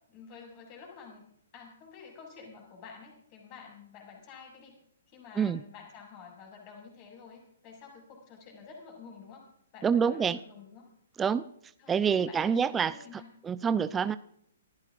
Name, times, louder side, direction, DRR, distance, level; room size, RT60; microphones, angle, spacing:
voice 1, 0.1-1.2 1.5-4.8 5.1-9.5 9.7-10.9 11.8-13.3, left 5 dB, 30° left, 0 dB, 7.0 m, -50 dB
voice 2, 9.8-10.4 11.2-11.4 11.9-13.0 13.4-14.2, right 7 dB, 15° right, 14 dB, 0.5 m, -26 dB
28.0 x 15.5 x 2.5 m, 0.70 s
figure-of-eight pair, 120°, 0 cm